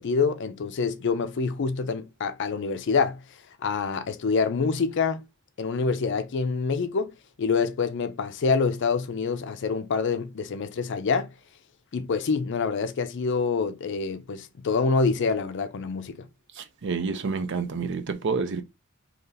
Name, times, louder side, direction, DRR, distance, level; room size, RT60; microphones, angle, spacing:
voice 1, 0.0-3.2 3.6-5.2 5.6-7.1 7.4-11.3 11.9-16.3, left 4 dB, 55° left, 0.4 m, -26 dB
voice 2, 16.6-18.6, right 4 dB, 55° right, 0.5 m, -29 dB
2.8 x 2.7 x 3.8 m
head